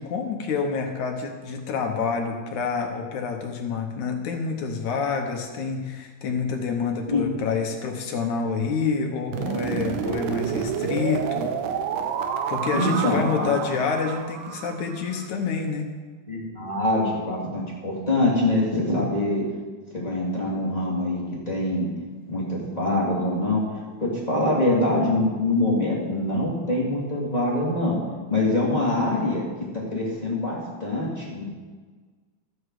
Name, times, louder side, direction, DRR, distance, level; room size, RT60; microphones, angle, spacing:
voice 1, 0.0-11.6 12.5-15.9, left 5 dB, 70° left, 3 dB, 2.1 m, -28 dB
sound 1, 9.3-15.3, right 7 dB, 85° right, 2.5 m, -29 dB
voice 2, 12.7-13.6 16.3-19.4 19.9-21.9 22.3-23.6 24.0-28.0 28.3-29.4 29.7-31.4, left 2 dB, 10° left, -5 dB, 2.4 m, -24 dB
13.5 x 10.0 x 4.8 m, 1.4 s
omnidirectional pair, 4.1 m